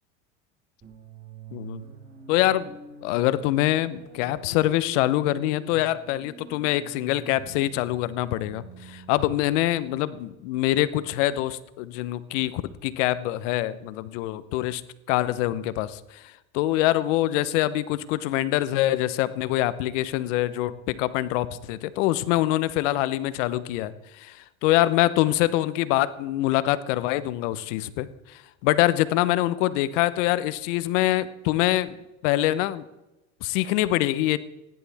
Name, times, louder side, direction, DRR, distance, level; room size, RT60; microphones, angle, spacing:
sound 1, 0.8-10.7, right 3 dB, 25° right, 5.4 m, -46 dB
voice 1, 1.5-1.9 2.3-14.8 15.1-32.8 33.4-34.4, left 15 dB, 70° left, 16 dB, 0.9 m, -25 dB
17.0 x 10.5 x 3.5 m, 0.98 s
supercardioid pair, 100°, 38 cm